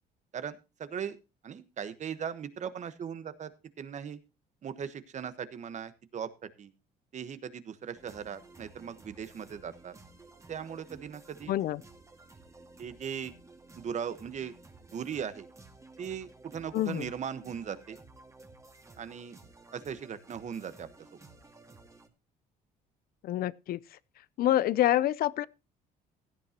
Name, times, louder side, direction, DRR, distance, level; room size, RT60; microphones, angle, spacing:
voice 1, 0.3-1.2 1.4-3.5 3.8-4.2 4.6-6.7 7.1-10.0 10.5-11.5 12.8-13.3 13.7-14.5 14.9-15.5 16.0-18.0 19.0-19.4 19.7-20.9, right 7 dB, 45° right, 1.3 m, -38 dB
sound 1, 7.9-22.1, right 3 dB, 20° right, 1.9 m, -54 dB
voice 2, 11.5-11.8 16.7-17.1 23.2-23.8 24.4-25.5, left 13 dB, 60° left, 0.5 m, -27 dB
16.0 x 11.0 x 2.9 m
cardioid pair, 110°, 17 cm